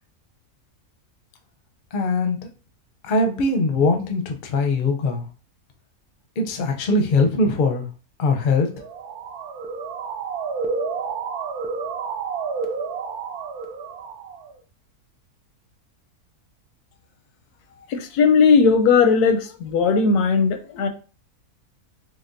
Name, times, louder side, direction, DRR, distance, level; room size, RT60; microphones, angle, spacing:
voice 1, 1.9-2.4 3.0-5.3 6.4-7.9 8.2-8.7, left 3 dB, 55° left, 3 dB, 0.6 m, -21 dB
Motor vehicle (road) / Siren, 8.7-14.6, right 5 dB, 80° right, 1.1 m, -30 dB
voice 2, 17.9-20.9, left 5 dB, 85° left, 7 dB, 1.1 m, -17 dB
4.2 x 3.1 x 2.6 m, 0.36 s
omnidirectional pair, 1.6 m